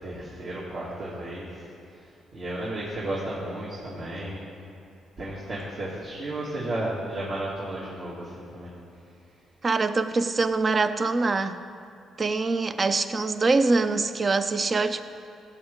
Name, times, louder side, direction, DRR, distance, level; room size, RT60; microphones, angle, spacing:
voice 1, 0.0-4.6 5.2-8.7, right 1 dB, 55° right, -8 dB, 2.5 m, -34 dB
voice 2, 9.6-11.6 12.2-15.0, right 3 dB, 35° right, 10 dB, 0.5 m, -24 dB
16.5 x 8.0 x 3.6 m, 2.6 s
cardioid pair, 90°, 0 cm